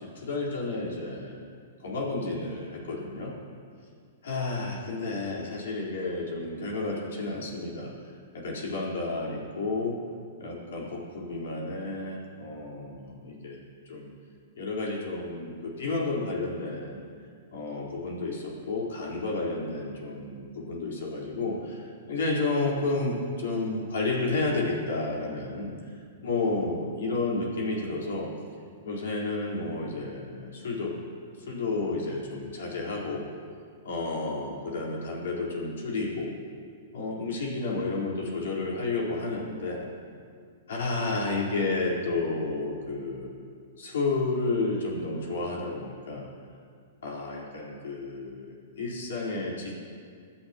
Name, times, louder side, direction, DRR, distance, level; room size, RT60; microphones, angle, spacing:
voice 1, 0.0-1.4 1.8-3.3 4.2-7.9 8.3-10.0 10.4-14.1 14.6-17.0 17.5-25.7 26.2-28.3 28.8-31.0 31.5-33.3 33.8-36.3 36.9-39.9 40.7-43.3 43.8-46.3 47.0-49.7, left 3 dB, 70° left, -4 dB, 4.1 m, -31 dB
26.5 x 11.0 x 3.0 m, 2.1 s
hypercardioid pair, 115°, 0 cm